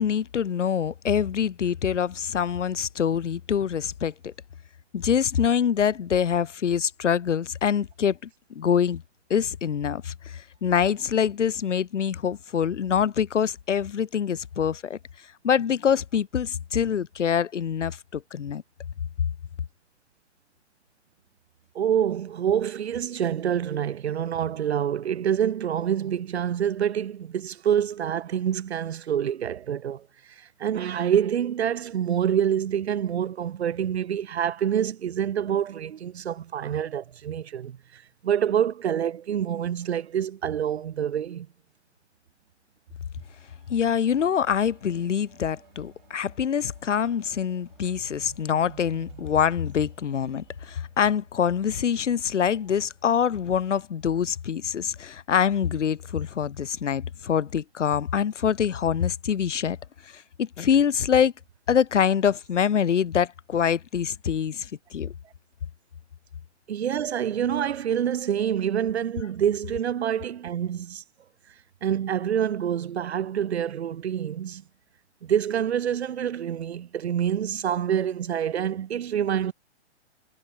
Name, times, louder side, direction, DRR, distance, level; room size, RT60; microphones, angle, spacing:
voice 1, 0.0-4.3 4.9-9.0 9.3-15.0 15.4-18.6 43.7-59.8 60.1-61.3 61.7-65.1, left 8 dB, 90° left, 2.5 m, -25 dB
voice 2, 21.7-30.0 30.4-41.5 66.7-71.0 71.8-74.6 75.2-79.5, right 9 dB, 65° right, 1.5 m, -26 dB
sound 1, 43.2-52.7 53.5-53.6, right 11 dB, 45° right, 7.4 m, -53 dB
hypercardioid pair, 175°, 35 cm